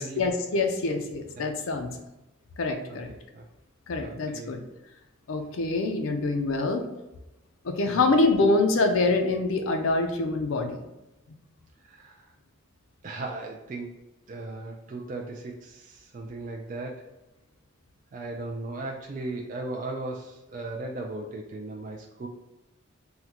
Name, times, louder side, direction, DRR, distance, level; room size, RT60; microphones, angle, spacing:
voice 1, 0.0-1.9 2.6-3.1 3.9-4.6 5.3-6.9 7.6-10.8, left 3 dB, 70° left, 5 dB, 0.5 m, -25 dB
voice 2, 4.0-4.5 7.8-8.1 11.9-12.2 13.0-13.9 14.3-17.1 18.1-22.3, right 2 dB, 40° right, 0 dB, 0.3 m, -37 dB
3.7 x 2.1 x 2.8 m, 0.98 s
head